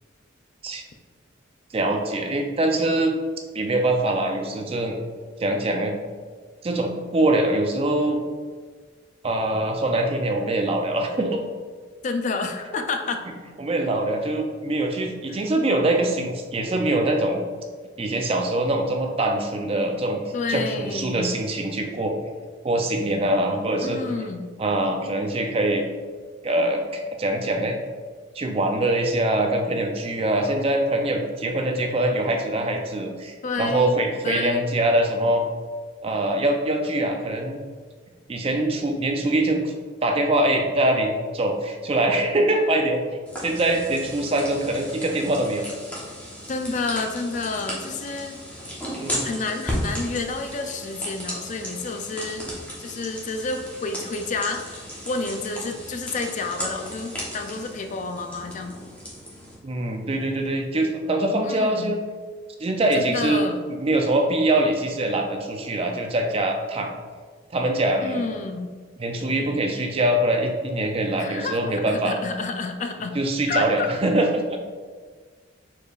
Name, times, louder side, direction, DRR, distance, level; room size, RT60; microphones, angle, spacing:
voice 1, 1.7-3.2 3.5-5.0 5.4-5.9 6.6-8.2 9.2-11.4 13.6-17.4 18.0-20.2 20.5-22.2 22.6-24.0 24.6-25.8 26.4-27.8 28.4-35.4 36.0-37.6 38.3-39.7 40.0-43.0 43.4-45.7 49.0-49.3 59.6-62.0 62.6-63.4 63.7-66.9 67.5-68.3 69.0-72.1 73.1-74.6, right 1 dB, 30° right, 3 dB, 0.4 m, -23 dB
voice 2, 12.0-13.2 15.3-15.4 20.3-21.4 23.8-24.5 33.4-34.7 46.5-48.4 49.2-52.5 52.8-58.7 61.4-61.9 62.9-63.6 68.0-68.7 71.2-73.2 73.5-73.9, left 3 dB, 40° left, 6 dB, 0.3 m, -30 dB
sound 1, 43.3-59.6, equal, 5° left, 0.9 m, -35 dB
4.8 x 4.5 x 2.4 m, 1.5 s
head